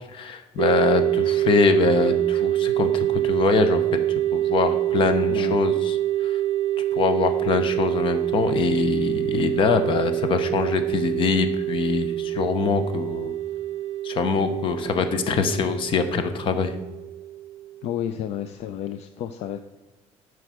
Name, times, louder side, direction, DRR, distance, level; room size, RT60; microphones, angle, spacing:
voice 1, 0.1-3.8 4.3-6.0 6.2-6.4 6.9-13.3 14.0-16.7, left 5 dB, 45° left, 9 dB, 0.8 m, -23 dB
sound 1, 0.6-17.9, right 13 dB, 70° right, 0.5 m, -25 dB
voice 2, 17.8-19.6, left 10 dB, 60° left, 10 dB, 0.4 m, -31 dB
7.9 x 4.7 x 6.2 m, 1.2 s
cardioid pair, 175°, 12 cm